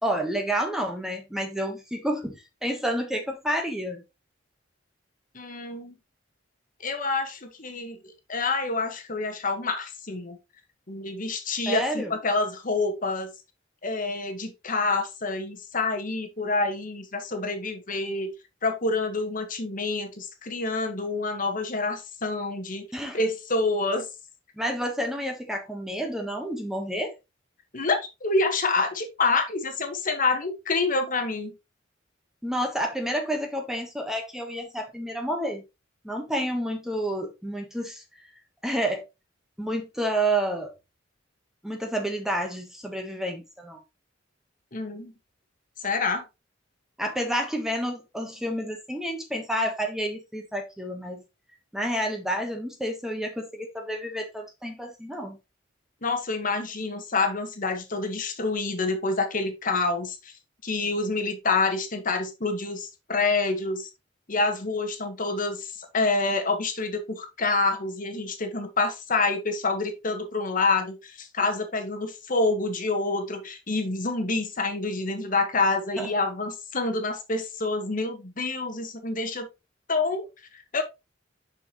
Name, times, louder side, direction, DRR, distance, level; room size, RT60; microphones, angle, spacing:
voice 1, 0.0-4.0 11.7-12.1 22.9-23.2 24.6-27.1 32.4-35.6 36.0-38.0 38.6-39.0 39.6-40.7 41.6-43.8 47.0-51.2 51.7-55.4 76.0-76.1, right 1 dB, 5° right, 1.3 m, -29 dB
voice 2, 5.3-5.9 6.8-10.4 10.9-13.3 13.8-18.3 18.6-22.9 23.1-24.1 27.7-31.5 44.7-45.1 45.8-46.2 56.0-60.3 60.6-63.9 64.3-79.5 79.9-80.2 80.5-80.8, left 3 dB, 45° left, 1.5 m, -27 dB
6.8 x 6.1 x 3.1 m
head